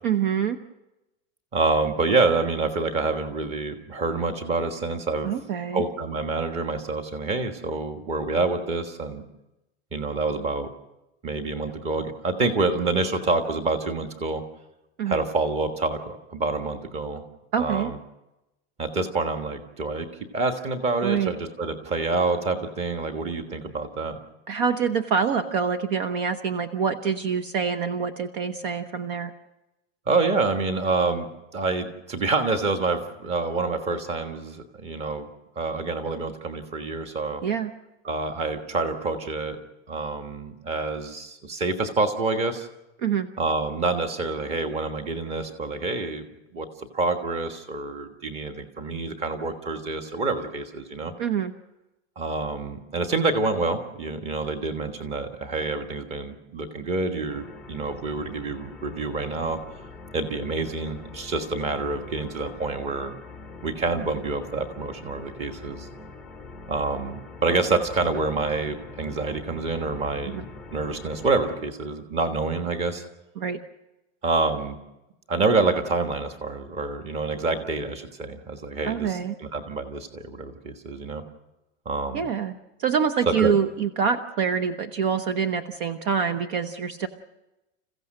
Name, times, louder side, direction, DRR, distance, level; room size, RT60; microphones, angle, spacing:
voice 1, 0.0-0.6 5.2-5.9 15.0-15.2 17.5-17.9 21.0-21.3 24.5-29.3 37.4-37.7 43.0-43.3 51.2-51.5 70.2-70.4 73.4-73.6 78.8-79.3 82.1-82.5 82.8-87.1, right 6 dB, 45° right, 10 dB, 1.0 m, -25 dB
voice 2, 1.5-5.3 5.7-9.2 9.9-10.7 11.2-14.4 15.0-17.2 17.6-18.0 18.8-20.1 20.3-24.2 30.1-35.3 35.5-37.4 38.0-39.6 39.9-42.7 43.4-46.3 46.5-51.1 52.2-59.6 60.1-63.1 63.6-65.9 66.7-70.5 70.7-73.0 74.2-74.8 75.3-81.2 81.8-82.3 83.4-83.5, right 3 dB, 15° right, 7 dB, 1.4 m, -27 dB
sound 1, 57.3-71.6, left 3 dB, ahead, 0.8 m, -43 dB
28.5 x 15.5 x 6.6 m, 0.97 s
supercardioid pair, 175°, 36 cm